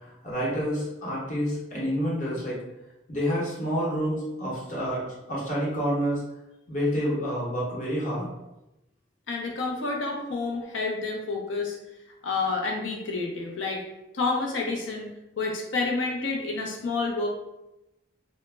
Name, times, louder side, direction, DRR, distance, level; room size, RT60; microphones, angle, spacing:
voice 1, 0.0-2.6 3.1-6.2 6.7-8.3, equal, 45° left, -6 dB, 0.9 m, -28 dB
voice 2, 9.3-11.8 12.2-13.8 14.1-15.1 15.4-17.3, left 3 dB, 80° left, 0 dB, 0.6 m, -29 dB
2.0 x 2.0 x 3.3 m, 0.93 s
head